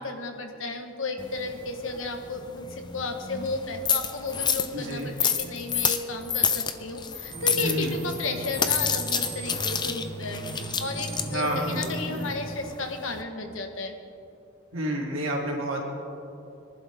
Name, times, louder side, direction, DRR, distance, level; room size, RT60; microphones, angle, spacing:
voice 1, 0.0-13.9, left 2 dB, 80° left, 5 dB, 1.5 m, -33 dB
sound 1, 1.2-13.2, left 7 dB, 20° left, 0.6 m, -30 dB
voice 2, 4.7-5.1 7.6-7.9 11.2-12.0 14.7-15.8, right 1 dB, 85° right, -2 dB, 3.0 m, -29 dB
sound 2, 7.3-12.3, right 1 dB, 35° right, 3.3 m, -37 dB
23.5 x 11.5 x 3.6 m, 2.7 s
head